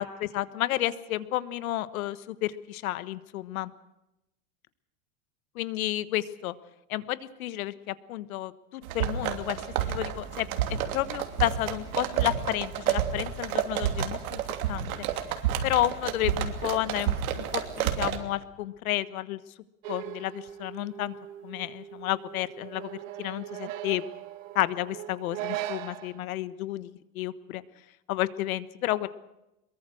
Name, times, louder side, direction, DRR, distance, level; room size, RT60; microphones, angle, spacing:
voice 1, 0.0-3.7 5.5-6.5 6.9-9.6 9.9-10.5 10.9-14.4 14.7-14.9 15.6-19.4 19.9-21.1 21.4-24.0 24.5-27.6 28.1-29.1, left 15 dB, 80° left, 15 dB, 1.4 m, -31 dB
sound 1, 8.8-18.2, right 9 dB, 85° right, 3.0 m, -30 dB
sound 2, 19.8-26.2, right 13 dB, 65° right, 1.7 m, -39 dB
23.0 x 22.5 x 6.4 m, 0.92 s
supercardioid pair, 175°, 42 cm